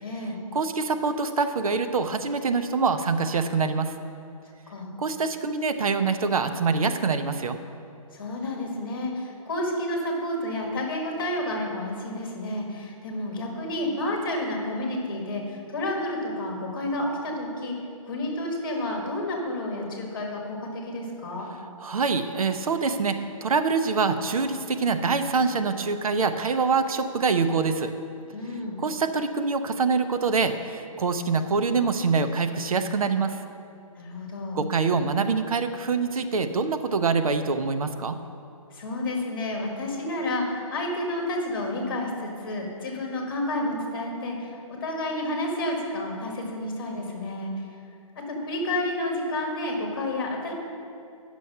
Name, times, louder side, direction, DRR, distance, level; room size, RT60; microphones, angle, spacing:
voice 1, 0.0-0.4 4.7-4.9 8.1-17.8 18.0-21.5 28.3-28.8 34.0-34.6 38.7-47.5 48.3-50.5, left 1 dB, 40° left, 1 dB, 1.7 m, -30 dB
voice 2, 0.5-3.9 5.0-7.6 21.8-27.9 28.8-33.4 34.5-38.2, right 4 dB, 75° right, 9 dB, 0.7 m, -25 dB
9.3 x 6.3 x 5.5 m, 2.5 s
hypercardioid pair, 180°, 18 cm